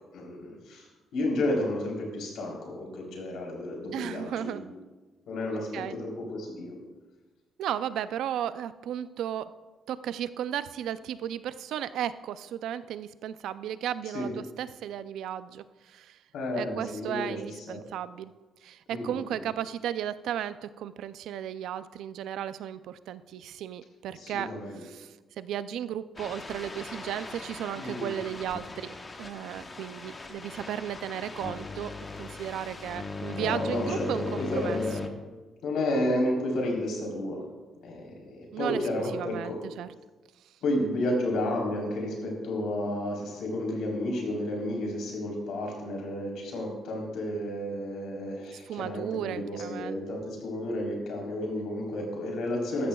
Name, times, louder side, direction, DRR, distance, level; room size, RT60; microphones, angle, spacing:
voice 1, 0.1-0.9 1.1-4.6 5.3-6.8 14.1-14.3 16.3-17.4 17.7-17.8 18.9-19.2 24.1-24.8 27.8-28.1 33.4-35.0 35.6-37.4 37.8-39.6 40.6-52.9, left 1 dB, 80° left, -1 dB, 3.7 m, -31 dB
voice 2, 3.9-4.6 5.5-6.0 7.6-9.5 9.9-16.2 16.5-18.3 18.6-34.8 38.5-38.8 39.1-39.9 40.5-40.6 48.5-50.0, right 10 dB, 80° right, 14 dB, 0.4 m, -35 dB
sound 1, 26.2-35.1, left 3 dB, 30° left, 1.1 m, -39 dB
13.5 x 13.0 x 2.3 m, 1.2 s
cardioid pair, 90°, 0 cm